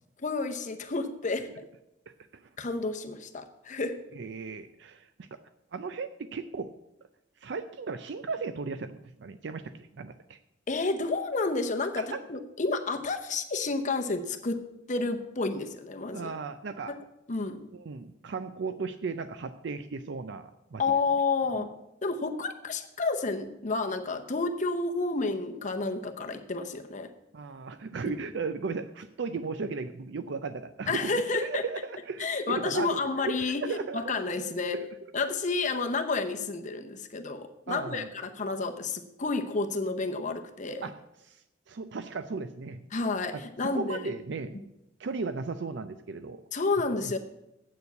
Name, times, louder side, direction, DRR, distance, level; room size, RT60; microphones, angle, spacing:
voice 1, 0.2-1.5 2.6-4.0 10.7-14.6 14.9-16.3 16.9-17.0 17.3-17.6 20.8-21.7 22.0-27.1 28.0-28.2 30.9-31.6 32.2-34.8 35.1-40.9 42.9-44.0 46.5-47.2, left 3 dB, 45° left, 7 dB, 0.8 m, -30 dB
voice 2, 4.1-5.4 5.7-6.7 7.4-10.4 12.0-12.2 16.1-16.9 17.7-20.8 21.6-21.7 27.3-31.1 31.4-34.1 34.7-34.9 37.7-38.1 40.8-40.9 41.2-41.4 41.7-42.8 43.3-44.6 45.0-46.4 47.0-47.1, right 4 dB, 70° right, 11 dB, 0.5 m, -36 dB
8.3 x 7.0 x 8.0 m, 0.87 s
head